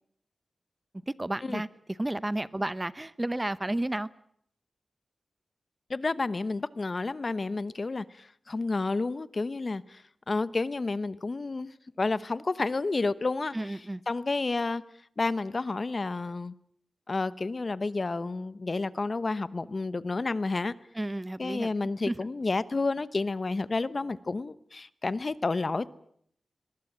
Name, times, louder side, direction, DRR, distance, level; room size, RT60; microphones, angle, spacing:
voice 1, 1.1-1.7 2.0-4.1 13.5-14.0 20.9-21.7 22.1-22.2, right 1 dB, 20° right, 17 dB, 0.9 m, -32 dB
voice 2, 5.9-10.0 10.3-13.8 14.1-14.8 15.2-16.5 17.1-20.7 21.4-25.9, left 3 dB, 45° left, 16 dB, 0.9 m, -30 dB
22.0 x 20.5 x 8.8 m, 0.68 s
wide cardioid pair, 70°, 0 cm